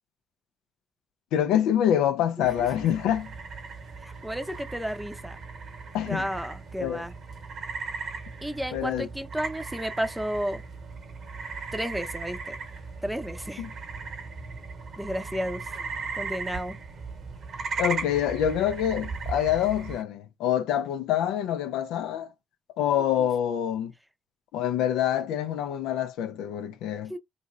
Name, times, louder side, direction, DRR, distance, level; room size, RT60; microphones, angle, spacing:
voice 1, 1.3-3.3 5.9-6.3 6.8-7.0 8.7-9.1 13.6-13.7 17.8-22.3 22.8-23.9 24.5-27.1, left 10 dB, 80° left, 0.4 m, -26 dB
sound 1, 2.4-20.0, right 4 dB, 65° right, 1.0 m, -37 dB
voice 2, 4.0-5.4 6.0-7.1 8.4-10.6 11.7-12.6 13.0-13.7 15.0-15.7 16.1-16.8 23.2-23.3 27.1-27.2, equal, 5° right, 0.6 m, -32 dB
3.0 x 2.6 x 2.4 m
hypercardioid pair, 50°, 0 cm